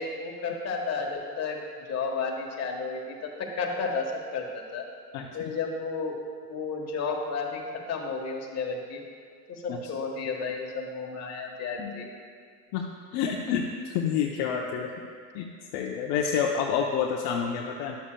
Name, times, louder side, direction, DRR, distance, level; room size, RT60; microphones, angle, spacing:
voice 1, 0.0-1.6 1.9-4.8 5.3-6.2 6.5-7.6 7.9-9.0 9.5-12.1, left 4 dB, 35° left, 1 dB, 1.4 m, -32 dB
voice 2, 13.1-14.9 15.3-15.5 15.7-18.0, left 7 dB, 55° left, 0 dB, 0.8 m, -28 dB
11.5 x 7.2 x 2.3 m, 2.1 s
hypercardioid pair, 95°, 47 cm